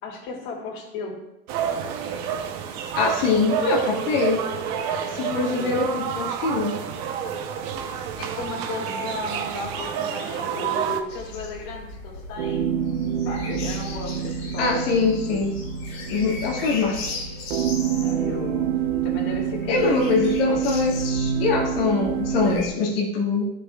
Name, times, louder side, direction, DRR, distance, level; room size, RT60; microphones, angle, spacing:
voice 1, 0.0-1.1 5.5-5.7 8.2-12.6 13.2-15.0 15.3-15.4 18.0-20.2, left 3 dB, 50° left, -2 dB, 2.9 m, -35 dB
sound 1, 1.5-11.0, right 7 dB, 45° right, 0.9 m, -29 dB
voice 2, 2.9-4.5 5.1-6.8 14.6-15.6 16.1-17.1 19.7-23.5, left 4 dB, 70° left, -1 dB, 2.0 m, -23 dB
sound 2, 11.1-22.7, left 2 dB, 85° left, 2.7 m, -37 dB
sound 3, 12.4-22.5, right 9 dB, 80° right, 1.0 m, -27 dB
13.5 x 6.7 x 2.4 m, 0.90 s
supercardioid pair, 165°, 30 cm